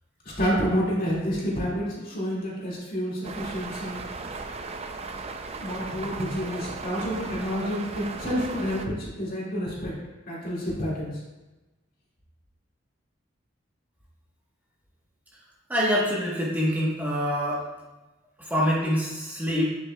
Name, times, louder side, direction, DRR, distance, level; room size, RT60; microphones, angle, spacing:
voice 1, 0.4-4.0 5.6-10.0 10.3-11.2, equal, 45° left, -5 dB, 2.3 m, -29 dB
sound 1, 3.2-8.9, right 3 dB, 30° right, 0.5 m, -37 dB
voice 2, 15.7-17.6 18.5-19.7, equal, 10° right, -6 dB, 1.3 m, -25 dB
9.2 x 7.5 x 2.4 m, 1.1 s
head